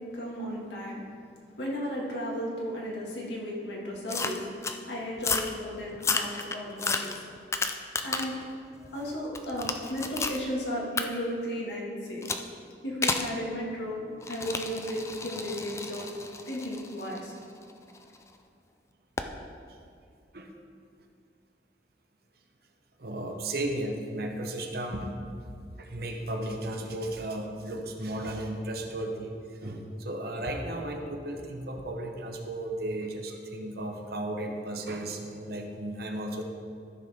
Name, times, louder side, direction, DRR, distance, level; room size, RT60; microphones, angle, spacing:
voice 1, 0.1-1.0 1.6-4.5 4.9-7.2 8.0-8.4 8.7-12.2 12.8-16.1 16.5-17.3, equal, 80° left, -3 dB, 2.1 m, -34 dB
sound 1, 4.1-4.8 5.2-5.5 5.9-8.4 8.8-10.4 11.0-11.1 12.2-12.5 13.0-13.3 14.2-18.2 19.2-19.3, left 4 dB, 15° left, 0.4 m, -32 dB
voice 2, 23.0-25.2 25.8-36.4, right 1 dB, 60° right, 3 dB, 1.0 m, -34 dB
13.5 x 6.4 x 3.6 m, 2.3 s
head